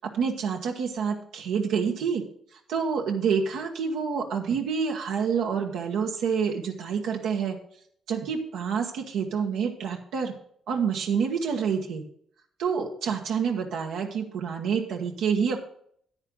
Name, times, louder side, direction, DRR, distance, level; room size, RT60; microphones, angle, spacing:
voice 1, 0.0-2.2 2.5-7.6 8.1-10.3 10.7-12.0 12.6-15.6, right 6 dB, 85° right, 1 dB, 1.3 m, -28 dB
9.6 x 9.4 x 3.9 m, 0.64 s
cardioid pair, 90°, 0 cm